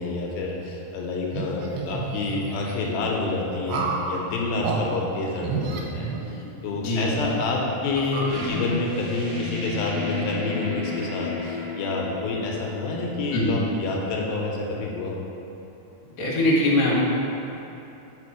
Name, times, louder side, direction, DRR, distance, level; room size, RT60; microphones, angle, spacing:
voice 1, 0.0-15.2, left 3 dB, 85° left, -1 dB, 2.4 m, -28 dB
sound 1, 1.3-2.8 3.7-4.1 4.6-4.8 5.4-6.7 7.2-7.3 7.9-8.9, right 5 dB, 80° right, 2.1 m, -31 dB
voice 2, 6.8-7.4 13.3-13.6 16.2-17.1, left 1 dB, 60° left, -7 dB, 1.5 m, -22 dB
sound 2, 8.3-13.7, left 3 dB, 55° right, 1.4 m, -33 dB
5.1 x 4.8 x 4.8 m, 3.0 s
omnidirectional pair, 4.3 m